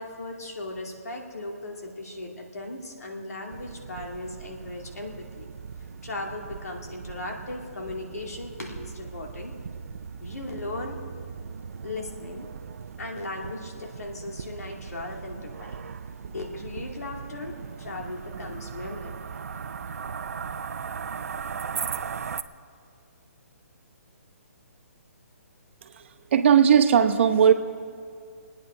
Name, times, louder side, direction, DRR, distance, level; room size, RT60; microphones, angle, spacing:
voice 1, 0.0-5.5 6.0-9.5 10.2-11.0 11.8-12.5 13.0-15.8 16.3-19.4, left 2 dB, 85° left, 1 dB, 2.4 m, -37 dB
sound 1, 3.5-22.4, right 6 dB, 70° right, 0.6 m, -38 dB
voice 2, 26.3-27.5, right 8 dB, 50° right, 8 dB, 1.0 m, -18 dB
25.5 x 9.5 x 5.0 m, 2.2 s
hypercardioid pair, 150°, 8 cm